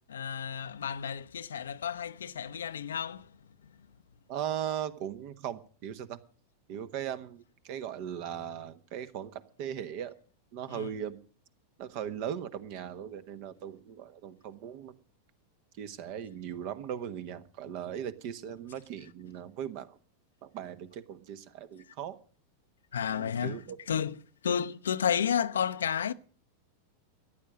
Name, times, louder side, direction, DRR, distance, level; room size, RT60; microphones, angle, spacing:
voice 1, 0.1-3.4 3.6-3.8 10.7-10.9 22.9-26.1, left 8 dB, 65° left, 0.7 m, -32 dB
voice 2, 4.3-6.2 6.7-10.2 10.5-11.2 11.8-14.9 15.8-20.0 20.4-22.2 23.1-23.8 24.5-24.6, right 9 dB, 45° right, 1.3 m, -38 dB
14.5 x 10.5 x 7.5 m
figure-of-eight pair, 90°, 0 cm